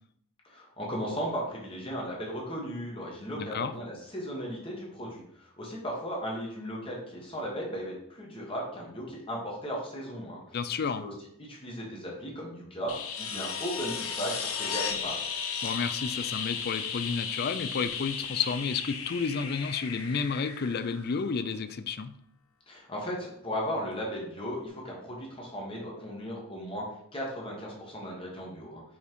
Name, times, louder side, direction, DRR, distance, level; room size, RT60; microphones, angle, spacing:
voice 1, 0.4-10.6 11.0-11.1 11.4-15.2 22.7-28.8, equal, 25° left, -2 dB, 1.6 m, -36 dB
voice 2, 3.4-3.7 10.5-11.1 15.6-22.1, left 5 dB, 45° left, 12 dB, 0.4 m, -31 dB
sound 1, 12.9-21.6 23.9-24.0, left 6 dB, 75° left, 0.8 m, -35 dB
5.7 x 4.2 x 4.6 m, 0.71 s
head